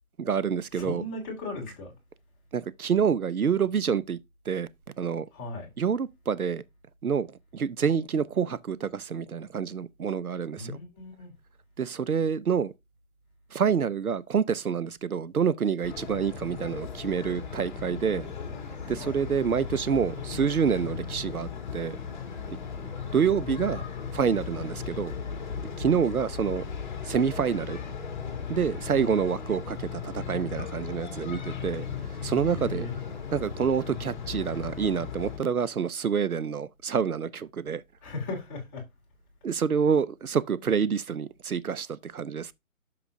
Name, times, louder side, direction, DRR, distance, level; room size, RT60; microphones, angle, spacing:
voice 1, 0.2-1.0 2.5-4.2 4.5-4.7 5.0-5.3 5.8-6.6 7.0-7.3 7.5-10.8 11.8-12.7 13.5-18.3 18.9-22.0 23.1-23.8 24.1-25.1 25.8-26.6 27.0-27.8 28.5-31.9 32.2-32.9 33.3-37.8 39.4-42.5, right 7 dB, 85° right, 0.8 m, -27 dB
voice 2, 0.7-1.9 5.3-5.7 10.6-11.3 19.0-19.2 32.5-32.9 38.0-38.8, left 2 dB, 15° left, 2.7 m, -37 dB
sound 1, 15.8-35.4, left 6 dB, 35° left, 2.3 m, -37 dB
11.5 x 6.9 x 2.7 m
figure-of-eight pair, 160°, 42 cm